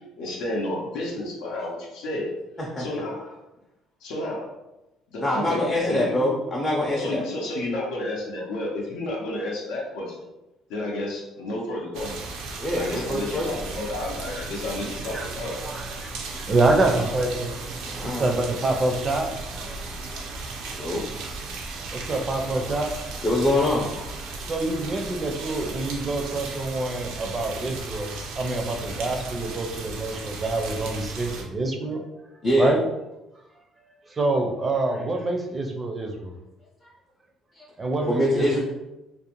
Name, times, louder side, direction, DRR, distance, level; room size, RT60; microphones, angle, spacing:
voice 1, 0.2-2.3 2.8-3.2 4.0-4.5 5.1-6.3 6.9-10.2 10.7-12.2 12.7-15.6, left 1 dB, 90° left, -3 dB, 0.6 m, -31 dB
voice 2, 5.2-7.2 12.6-13.7 16.9-17.1 17.9-18.3 19.7-20.2 20.6-21.0 22.8-22.9 23.2-24.0 32.4-32.7 36.8-36.9 37.6-37.7 38.1-38.6, left 1 dB, 25° left, -4 dB, 0.5 m, -25 dB
sound 1, 11.9-31.4, right 3 dB, 90° right, 0.4 m, -36 dB
voice 3, 14.8-15.3 15.6-19.3 19.6-19.8 21.9-22.9 24.5-32.0 32.6-32.8 34.1-36.3 37.8-38.6, right 2 dB, 25° right, 3 dB, 0.4 m, -26 dB
2.5 x 2.1 x 2.9 m, 0.98 s
cardioid pair, 115°, 0 cm